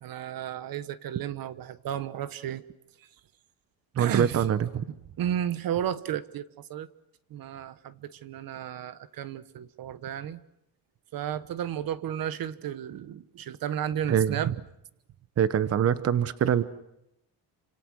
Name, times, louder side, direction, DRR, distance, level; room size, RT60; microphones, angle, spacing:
voice 1, 0.0-2.6 4.0-4.5 5.2-6.9 7.3-10.4 11.1-14.6, right 10 dB, 60° right, 14 dB, 1.2 m, -33 dB
voice 2, 3.9-4.8 14.1-14.5 15.4-16.6, right 9 dB, 35° right, 13 dB, 1.0 m, -24 dB
29.0 x 26.5 x 6.3 m, 0.83 s
cardioid pair, 155°, 40 cm